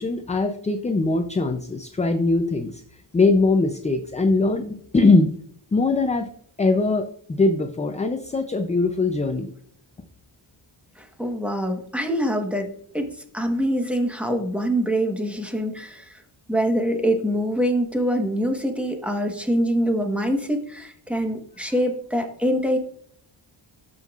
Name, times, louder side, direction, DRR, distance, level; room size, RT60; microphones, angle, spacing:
voice 1, 0.0-2.8 3.1-5.3 5.7-6.3 6.6-9.5, left 3 dB, 15° left, 6 dB, 0.4 m, -21 dB
voice 2, 11.2-12.7 12.9-13.1 13.3-16.0 16.5-22.8, equal, 5° right, 4 dB, 1.1 m, -24 dB
12.5 x 5.4 x 2.4 m, 0.65 s
wide cardioid pair, 150°, 48 cm